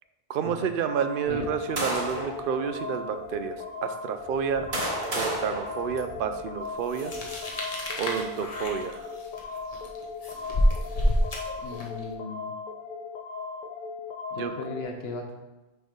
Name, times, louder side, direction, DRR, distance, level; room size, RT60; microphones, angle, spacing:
voice 1, 0.3-3.6 3.8-4.7 5.2-7.1 8.0-9.1 14.3-14.5, right 7 dB, 65° right, 8 dB, 0.7 m, -30 dB
sound 1, 0.9-14.8, left 4 dB, 60° left, 0.6 m, -38 dB
sound 2, 1.3-2.4 3.2-3.3 4.2-6.5, right 1 dB, 80° right, 1.7 m, -33 dB
sound 3, 6.9-12.0, equal, 40° left, 1.0 m, -28 dB
voice 2, 11.6-12.5 14.3-15.3, left 3 dB, 75° left, 2 dB, 1.0 m, -36 dB
6.2 x 3.4 x 5.1 m, 1.1 s
omnidirectional pair, 1.1 m